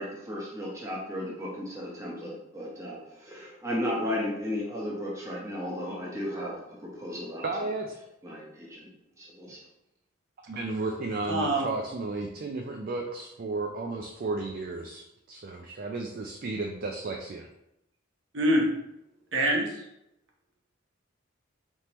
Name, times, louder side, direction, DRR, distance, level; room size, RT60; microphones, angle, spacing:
voice 1, 0.0-6.5 6.8-7.4 8.2-8.9 9.2-9.6, left 1 dB, 15° right, -4 dB, 1.0 m, -34 dB
voice 2, 7.4-7.9 10.5-15.0 15.3-17.5, right 3 dB, 45° right, 2 dB, 0.4 m, -33 dB
voice 3, 11.3-11.7 18.3-18.7 19.3-19.8, right 1 dB, 65° right, -1 dB, 0.9 m, -24 dB
4.3 x 3.5 x 3.0 m, 0.84 s
head